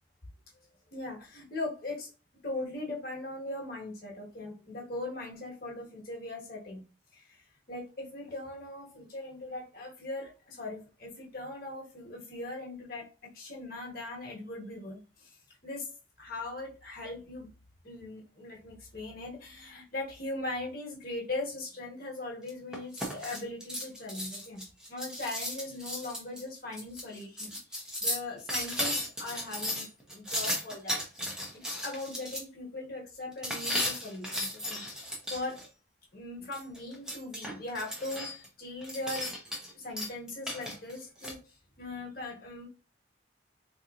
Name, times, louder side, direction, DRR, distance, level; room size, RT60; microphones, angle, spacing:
voice 1, 0.9-2.1 2.4-6.8 7.1-7.4 7.7-15.4 15.6-15.9 16.2-17.5 17.8-29.9 30.1-31.0 31.5-34.8 35.3-35.6 36.1-39.3 39.7-42.7, left 2 dB, 50° left, 1.3 m, -40 dB
sound 1, 22.5-32.4 33.4-35.7 36.5-38.5 38.8-39.7 40.0-41.3, equal, 5° right, 0.7 m, -35 dB
3.9 x 3.0 x 2.4 m
head